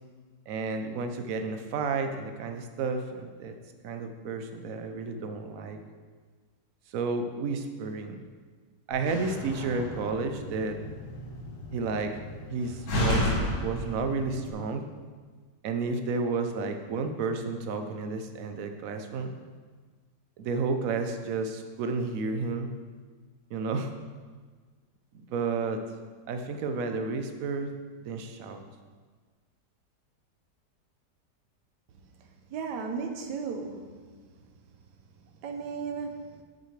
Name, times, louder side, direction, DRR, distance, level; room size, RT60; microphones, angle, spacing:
voice 1, 0.5-3.6 3.8-5.8 6.9-8.2 8.9-10.8 11.7-12.1 12.5-14.9 15.6-19.3 20.4-22.7 23.5-23.9 25.3-25.8 26.3-27.7 28.1-28.6, right 4 dB, 65° right, 6 dB, 1.0 m, -31 dB
Slam, 8.9-14.5, left 1 dB, 80° left, 1.9 m, -33 dB
voice 2, 32.5-33.8 35.4-36.1, right 5 dB, 80° right, 4 dB, 1.4 m, -34 dB
9.1 x 6.6 x 3.2 m, 1.5 s
omnidirectional pair, 1.8 m